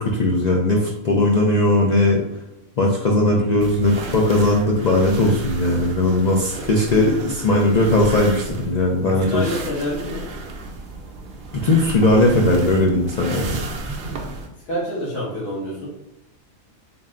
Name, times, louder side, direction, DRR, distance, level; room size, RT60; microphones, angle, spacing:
voice 1, 0.0-2.2 2.8-9.4 11.6-13.6, left 1 dB, 85° left, -1 dB, 0.3 m, -18 dB
sound 1, 3.6-14.5, right 3 dB, 55° right, 0.6 m, -33 dB
voice 2, 9.0-10.3 14.0-14.3 14.7-15.9, left 1 dB, 60° left, -7 dB, 1.7 m, -27 dB
4.0 x 2.2 x 3.6 m, 0.91 s
omnidirectional pair, 1.4 m